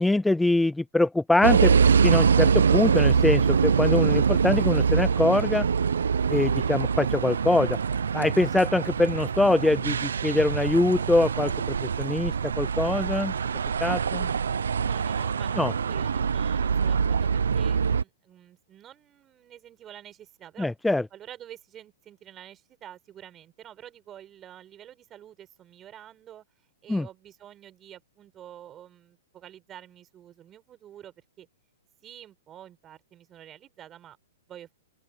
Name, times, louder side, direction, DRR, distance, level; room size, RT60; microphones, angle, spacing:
voice 1, 0.0-1.7 2.0-5.7 6.3-7.8 8.1-11.5 11.8-13.3 13.8-14.3 15.6-15.7 20.6-21.0 26.9-27.1, left 2 dB, 5° left, 0.3 m, -23 dB
sound 1, 1.4-18.0, right 6 dB, 85° right, 0.8 m, -24 dB
voice 2, 14.8-20.7 21.1-26.4 26.8-31.5 32.0-34.2 34.5-34.7, right 11 dB, 25° right, 4.6 m, -48 dB
open air
hypercardioid pair, 135°, 0 cm